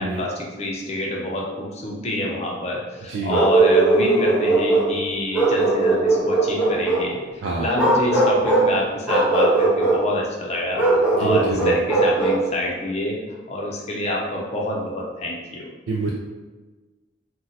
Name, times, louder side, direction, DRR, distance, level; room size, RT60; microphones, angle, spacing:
voice 1, 0.0-13.2 13.5-15.7, left 1 dB, 35° left, -2 dB, 0.6 m, -27 dB
voice 2, 3.1-3.4 7.4-7.7 11.2-11.8 15.9-16.1, right 3 dB, 85° right, -2 dB, 0.4 m, -26 dB
Bark, 3.3-4.9 5.3-7.1 7.7-8.7 9.1-10.0 10.8-12.4, right 2 dB, 10° right, 0.7 m, -19 dB
2.7 x 2.2 x 3.9 m, 1.3 s
head